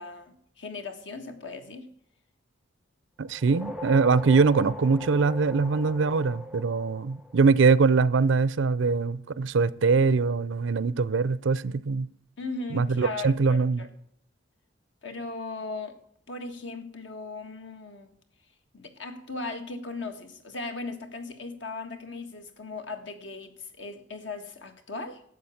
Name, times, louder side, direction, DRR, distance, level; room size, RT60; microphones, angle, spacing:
voice 1, 0.0-1.9 12.4-13.9 15.0-16.0 16.3-18.1 18.7-25.2, left 3 dB, 65° left, 1.6 m, -38 dB
voice 2, 3.2-12.1 12.7-13.8, right 4 dB, 75° right, 0.5 m, -23 dB
sound 1, 3.3-7.9, left 2 dB, 5° right, 0.6 m, -40 dB
12.0 x 8.1 x 7.1 m
head